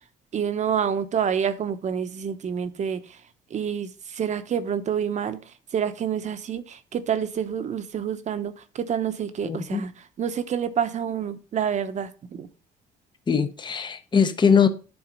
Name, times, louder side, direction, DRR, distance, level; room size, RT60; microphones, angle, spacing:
voice 1, 0.3-3.2 3.5-12.5, right 8 dB, 45° right, 1.0 m, -28 dB
voice 2, 9.4-9.8 13.3-14.7, left 6 dB, 25° left, 0.9 m, -21 dB
10.5 x 4.1 x 5.3 m
cardioid pair, 110°, 17 cm